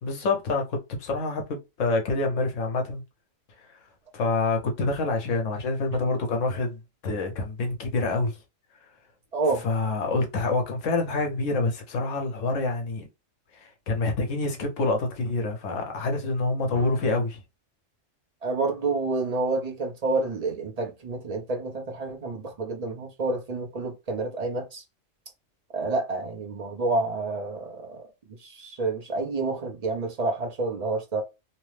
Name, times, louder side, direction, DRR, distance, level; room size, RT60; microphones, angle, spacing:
voice 1, 0.0-3.0 3.6-3.7 4.1-8.4 9.6-13.1 13.5-17.4, left 3 dB, 80° left, 1.2 m, -27 dB
voice 2, 9.3-9.6 16.7-16.8 18.4-24.8 25.7-28.1 28.4-31.2, right 3 dB, 40° right, 0.7 m, -29 dB
3.0 x 2.1 x 3.2 m
omnidirectional pair, 1.3 m